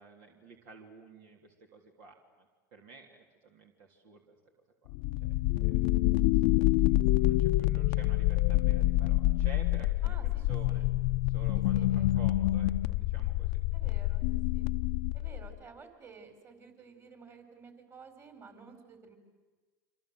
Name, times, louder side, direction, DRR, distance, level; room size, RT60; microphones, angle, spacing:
voice 1, 0.0-4.3 4.8-4.9 5.2-5.9 6.3-6.4 6.9-10.8 11.3-11.9 12.1-13.6, right 5 dB, 70° right, 2 dB, 3.4 m, -52 dB
sound 1, 4.9-15.5, left 16 dB, 65° left, 0.7 m, -27 dB
voice 2, 10.0-11.0 11.5-12.2 13.7-14.2 14.5-14.7 15.1-19.2, right 5 dB, 30° right, 7 dB, 4.8 m, -53 dB
28.5 x 25.5 x 7.9 m, 1.3 s
hypercardioid pair, 90°, 9 cm